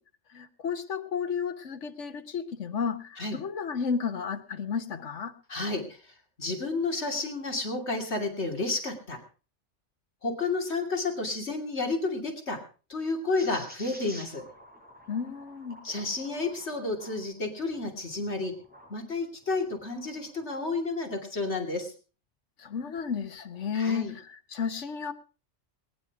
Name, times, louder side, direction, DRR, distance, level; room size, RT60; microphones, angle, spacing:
voice 1, 0.3-5.3 15.1-15.8 22.6-25.1, left 6 dB, 85° left, 1.5 m, -32 dB
voice 2, 5.5-5.8 6.4-9.2 10.2-12.6 12.9-14.4 15.8-18.5 18.9-21.9 23.7-24.1, left 3 dB, 70° left, 3.1 m, -31 dB
sound 1, 13.4-18.9 19.4-20.6, equal, 10° right, 6.1 m, -50 dB
21.5 x 10.5 x 4.7 m
omnidirectional pair, 1.2 m